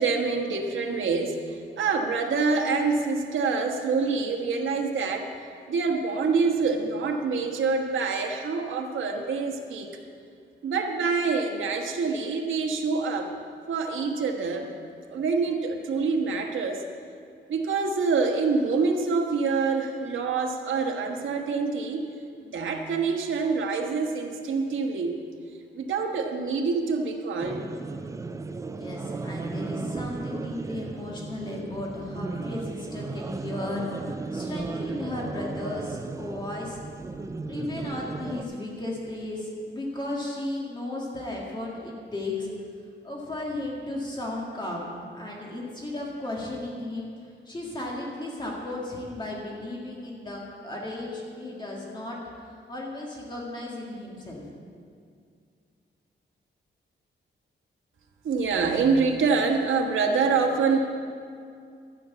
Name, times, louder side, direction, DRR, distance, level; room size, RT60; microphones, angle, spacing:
voice 1, 0.0-5.3 5.7-9.9 10.6-13.3 13.7-14.7 15.1-16.9 17.5-22.0 22.4-25.2 25.7-27.6 58.2-60.8, right 4 dB, 85° right, 3 dB, 1.4 m, -26 dB
sound 1, 27.4-38.4, right 3 dB, 15° right, 0.4 m, -35 dB
voice 2, 28.7-36.8 37.5-42.5 43.0-44.9 45.1-47.1 47.4-54.4, left 2 dB, 20° left, -3 dB, 1.8 m, -35 dB
12.5 x 6.9 x 8.2 m, 2.3 s
wide cardioid pair, 170°, 20 cm